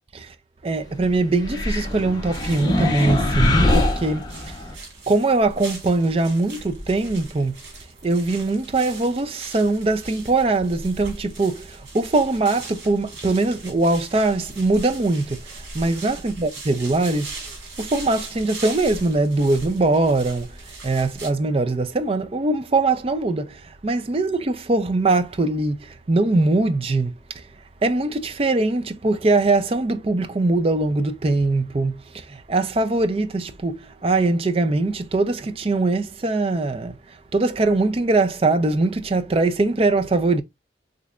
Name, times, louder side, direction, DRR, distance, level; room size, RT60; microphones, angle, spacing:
voice 1, 0.6-4.5 5.1-7.6 8.0-20.6 20.8-27.4 27.8-37.0 37.3-40.4, right 2 dB, 30° right, 0.4 m, -22 dB
sound 1, 1.4-4.7, left 1 dB, 20° left, 0.7 m, -22 dB
sound 2, 2.3-21.3, right 2 dB, 90° right, 1.8 m, -39 dB
3.8 x 3.2 x 2.4 m
head